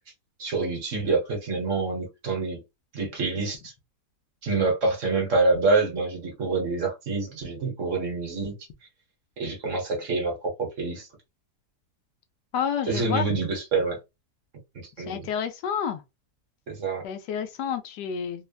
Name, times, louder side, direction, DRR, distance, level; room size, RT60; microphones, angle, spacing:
voice 1, 0.4-2.6 2.9-3.7 4.4-8.6 9.4-11.1 12.9-14.0 15.0-15.3 16.7-17.0, right 3 dB, 50° right, 1.3 m, -26 dB
voice 2, 12.5-13.3 15.1-16.0 17.0-18.5, left 8 dB, 80° left, 1.2 m, -29 dB
3.2 x 2.1 x 2.3 m
omnidirectional pair, 1.8 m